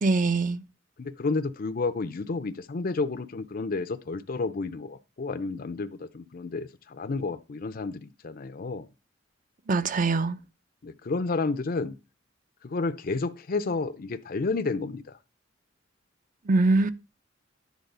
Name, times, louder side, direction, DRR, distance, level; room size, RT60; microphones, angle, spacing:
voice 1, 0.0-0.6 9.7-10.4 16.5-16.9, right 3 dB, 45° right, 0.7 m, -23 dB
voice 2, 1.0-8.9 10.8-12.0 12.6-15.2, left 3 dB, 50° left, 0.6 m, -31 dB
10.5 x 4.1 x 6.7 m
head